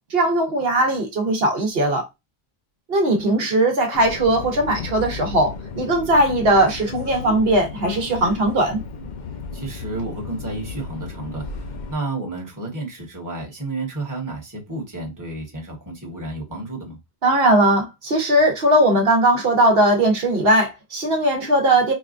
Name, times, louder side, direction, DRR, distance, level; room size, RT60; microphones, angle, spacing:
voice 1, 0.1-2.1 2.9-8.8 17.2-21.9, right 1 dB, 70° right, 1.1 m, -19 dB
Subway metro underground, 3.9-11.9, left 5 dB, 55° left, 0.6 m, -34 dB
voice 2, 9.5-17.0, right 2 dB, 20° right, 1.1 m, -31 dB
4.1 x 2.3 x 2.5 m
omnidirectional pair, 1.1 m